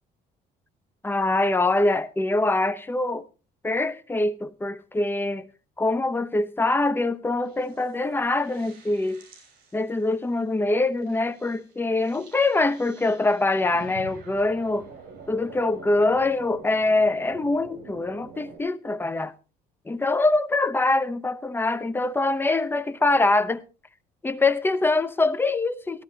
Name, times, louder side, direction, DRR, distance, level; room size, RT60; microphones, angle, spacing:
voice 1, 1.0-3.3 3.6-5.5 5.8-9.2 9.7-14.9 15.3-19.3 19.9-23.6 24.2-26.0, left 2 dB, 10° left, 0.9 m, -24 dB
sound 1, 7.4-10.1 11.0-18.6, right 4 dB, 60° right, 6.2 m, -46 dB
18.0 x 13.0 x 2.8 m
cardioid pair, 110°, 17 cm